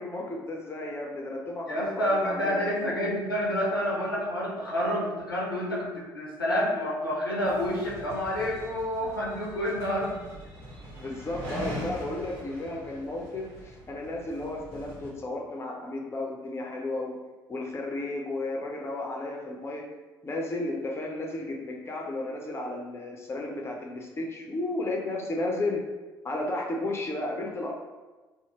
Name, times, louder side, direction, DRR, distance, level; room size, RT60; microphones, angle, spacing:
voice 1, 0.0-3.0 11.0-17.2 17.5-19.9 20.2-25.9 26.2-27.7, left 2 dB, 20° left, 0 dB, 0.5 m, -33 dB
voice 2, 1.7-10.2, equal, 90° left, -5 dB, 0.5 m, -28 dB
sound 1, 7.5-15.1, equal, 55° right, 0.9 m, -42 dB
2.6 x 2.0 x 2.9 m, 1.2 s
figure-of-eight pair, 50°, 12 cm